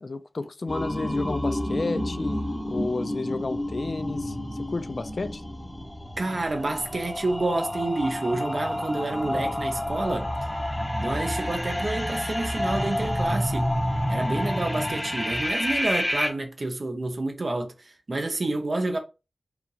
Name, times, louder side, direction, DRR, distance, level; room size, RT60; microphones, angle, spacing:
voice 1, 0.0-4.4 4.7-5.4, left 3 dB, 55° left, 0.4 m, -31 dB
sound 1, 0.7-16.3, left 1 dB, 10° left, 0.9 m, -29 dB
voice 2, 6.2-10.3 11.0-13.7 14.1-19.0, right 2 dB, 50° right, 0.8 m, -29 dB
4.8 x 2.6 x 3.3 m
wide cardioid pair, 85°, 0 cm